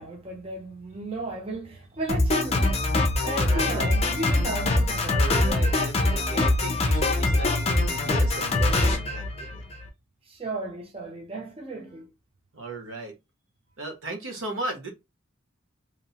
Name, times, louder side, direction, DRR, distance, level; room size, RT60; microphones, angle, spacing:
voice 1, 0.0-2.8 3.2-5.3 10.3-12.1, right 2 dB, 30° right, 0.5 m, -34 dB
Drum kit, 2.1-9.9, left 2 dB, 30° left, 0.5 m, -23 dB
voice 2, 3.2-3.9 5.0-9.6 12.5-13.1 13.8-14.9, right 2 dB, 75° right, 0.9 m, -36 dB
2.9 x 2.0 x 2.8 m
head